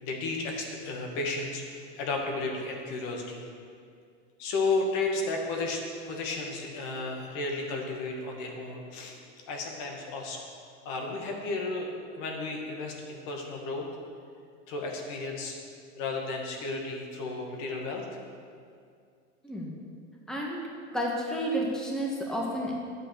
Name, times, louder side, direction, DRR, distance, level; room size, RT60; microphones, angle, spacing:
voice 1, 0.0-3.4 4.4-9.2 9.5-10.4 10.9-11.9 12.2-13.9 14.7-15.5 16.0-18.0, left 3 dB, 60° left, 1 dB, 2.1 m, -33 dB
voice 2, 19.4-19.8 20.3-20.6 20.9-22.7, equal, ahead, -2 dB, 1.5 m, -31 dB
9.2 x 7.4 x 6.6 m, 2.3 s
supercardioid pair, 110°, 38 cm